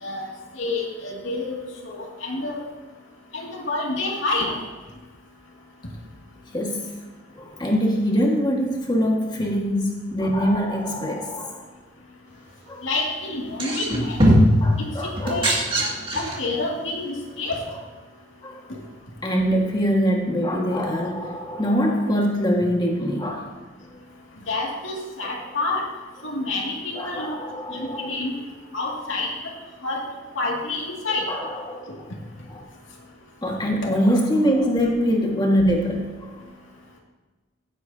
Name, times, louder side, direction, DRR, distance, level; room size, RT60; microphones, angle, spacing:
voice 1, 0.6-2.6 3.3-4.5 12.8-14.2 14.8-14.9 15.2-15.5 16.1-17.6 24.5-25.8 26.2-27.4 27.7-28.3 28.7-29.5 29.8-30.0 30.4-31.3, left 2 dB, 90° left, -2 dB, 2.3 m, -28 dB
voice 2, 6.5-6.9 7.3-11.6 12.7-12.9 14.6-15.6 18.4-18.6 19.2-23.5 27.0-28.1 31.3-31.8 33.4-36.4, equal, 25° left, -1 dB, 1.7 m, -23 dB
sound 1, 13.4-14.6 15.2-16.5 17.5-17.6, equal, 30° right, 2.2 m, -19 dB
16.5 x 8.2 x 2.8 m, 1.3 s
head